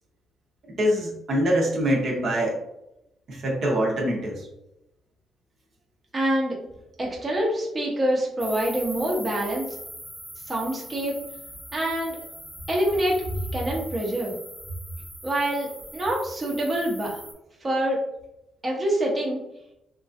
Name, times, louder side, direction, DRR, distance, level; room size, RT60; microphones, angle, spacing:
voice 1, 0.7-2.6 3.3-4.5, equal, 60° right, -2 dB, 0.9 m, -24 dB
voice 2, 6.1-6.6 7.0-9.7 10.5-11.2 11.7-12.2 12.7-13.2 13.5-14.3 15.2-17.2 17.6-18.0 18.6-19.4, right 1 dB, 30° right, -3 dB, 0.8 m, -26 dB
sound 1, 8.4-17.3, equal, 5° right, 1.2 m, -42 dB
2.9 x 2.5 x 2.5 m, 0.86 s
cardioid pair, 90°, 0 cm